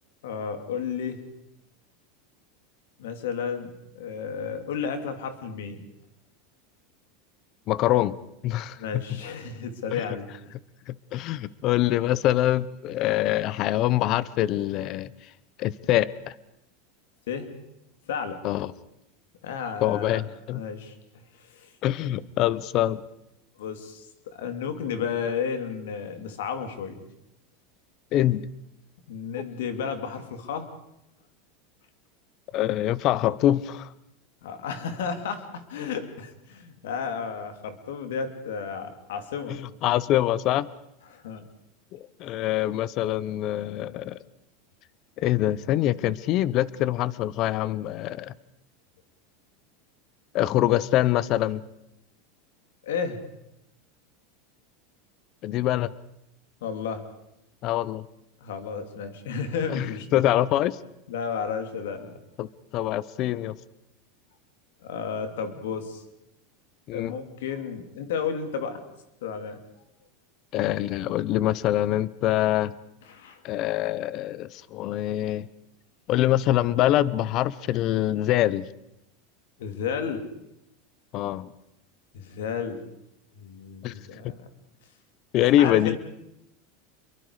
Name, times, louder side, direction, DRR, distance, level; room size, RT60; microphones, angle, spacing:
voice 1, 0.2-1.2 3.0-5.9 8.8-10.3 17.3-17.5 18.1-18.4 19.4-20.2 20.5-21.7 23.6-27.0 29.1-30.7 34.4-39.6 41.1-41.4 52.8-53.2 56.6-57.0 58.4-60.2 61.1-62.2 64.8-66.0 66.9-68.8 69.2-69.6 73.0-73.4 79.6-80.2 82.1-82.8 83.4-84.4 85.4-86.0, left 6 dB, 80° left, 7 dB, 3.2 m, -32 dB
voice 2, 7.7-8.1 8.4-9.2 9.9-10.0 10.9-15.1 15.6-16.3 18.4-18.7 19.8-20.6 21.8-23.0 28.1-28.4 32.5-33.9 39.5-40.7 41.9-44.2 45.2-48.3 50.3-51.6 55.4-55.9 57.6-58.0 59.7-60.8 62.4-62.5 62.7-63.5 66.9-67.1 70.5-72.7 73.4-75.5 76.1-78.7 81.1-81.5 83.8-84.0 85.3-86.0, left 13 dB, 45° left, 19 dB, 0.9 m, -24 dB
27.5 x 23.0 x 5.0 m, 0.83 s
supercardioid pair, 125°, 0 cm